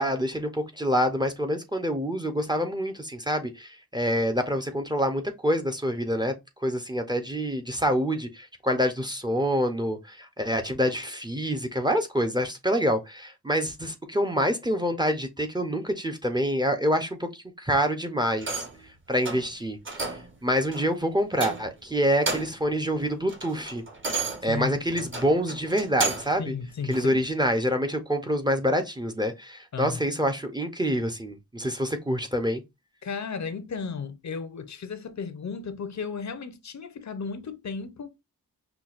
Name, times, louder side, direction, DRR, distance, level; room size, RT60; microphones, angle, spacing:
voice 1, 0.0-6.3 6.6-18.6 19.1-19.8 20.0-23.8 24.4-26.5 26.9-32.6, equal, 10° right, 0.6 m, -26 dB
sound 1, 18.4-18.8 19.2-19.5 19.9-20.3 20.7-20.9 21.3-21.8 22.1-22.7 23.1-26.4 26.9-27.0, right 3 dB, 35° right, 0.9 m, -32 dB
voice 2, 24.4-25.1 26.4-27.2 29.7-30.1 33.0-38.1, left 5 dB, 50° left, 0.6 m, -34 dB
5.8 x 2.2 x 2.4 m
wide cardioid pair, 95°, 35 cm